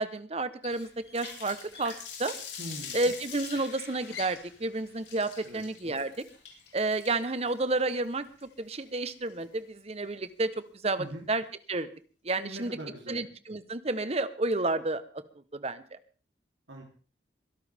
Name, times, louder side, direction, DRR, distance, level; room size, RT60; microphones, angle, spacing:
voice 1, 0.0-1.9 2.2-2.3 2.9-6.1 6.7-10.5 10.8-11.9 12.2-12.7 13.1-15.0 15.5-15.8, right 2 dB, 35° right, 12 dB, 1.0 m, -31 dB
Water tap faucet, 0.6-9.6, left 6 dB, 80° left, 5.7 m, -44 dB
voice 2, 2.6-3.0 5.4-5.6 11.0-11.3 12.4-13.2 16.7-16.8, right 1 dB, 85° right, 0 dB, 3.4 m, -41 dB
23.0 x 12.5 x 3.6 m, 0.39 s
head